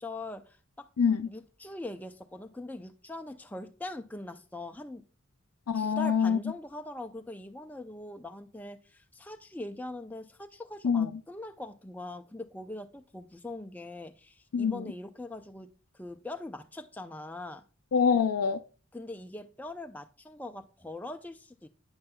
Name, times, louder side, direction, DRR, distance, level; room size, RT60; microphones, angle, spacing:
voice 1, 0.0-0.9 1.3-5.0 5.7-15.7 15.9-17.6 18.9-21.7, left 2 dB, 5° left, 0.4 m, -42 dB
voice 2, 1.0-1.3 5.7-6.4 10.8-11.1 14.5-14.9 17.9-18.6, left 6 dB, 90° left, 0.4 m, -25 dB
8.7 x 7.3 x 2.2 m
head